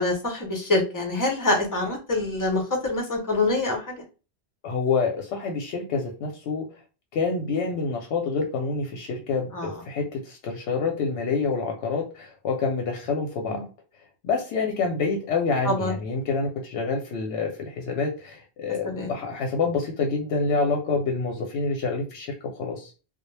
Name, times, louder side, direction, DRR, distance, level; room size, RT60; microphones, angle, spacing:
voice 1, 0.0-3.9 9.5-9.7 13.5-13.6 15.7-15.9 18.9-19.1, left 2 dB, 20° left, 1 dB, 0.6 m, -25 dB
voice 2, 4.6-6.6 7.1-13.7 14.2-22.9, left 4 dB, 85° left, 2 dB, 0.9 m, -27 dB
2.1 x 2.0 x 3.1 m, 0.34 s
omnidirectional pair, 1.1 m